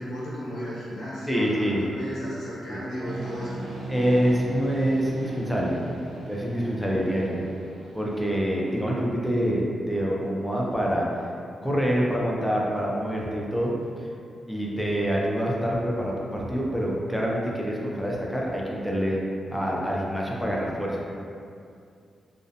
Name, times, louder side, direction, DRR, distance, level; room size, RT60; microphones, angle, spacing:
voice 1, 0.0-3.7, equal, 90° left, -8 dB, 0.8 m, -34 dB
voice 2, 1.3-1.8 2.7-2.8 3.9-5.8 6.2-7.4 7.9-11.1 11.6-13.7 14.5-19.2 19.5-21.0, equal, ahead, -4 dB, 0.3 m, -26 dB
sound 1, 3.0-8.8, right 2 dB, 80° right, 0.3 m, -38 dB
2.5 x 2.0 x 2.6 m, 2.4 s
wide cardioid pair, 150°, 0 cm